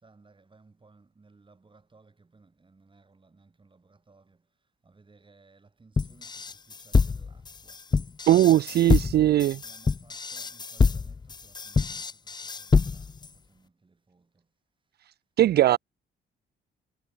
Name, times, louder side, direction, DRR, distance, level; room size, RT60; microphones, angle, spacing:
voice 1, 0.0-4.4 4.8-7.8 8.7-14.5, right 3 dB, 25° right, 6.1 m, -60 dB
sound 1, 6.0-13.3, left 4 dB, 20° left, 0.5 m, -25 dB
voice 2, 8.3-9.6 15.4-15.8, right 13 dB, 55° right, 0.4 m, -19 dB
cardioid pair, 90°, 20 cm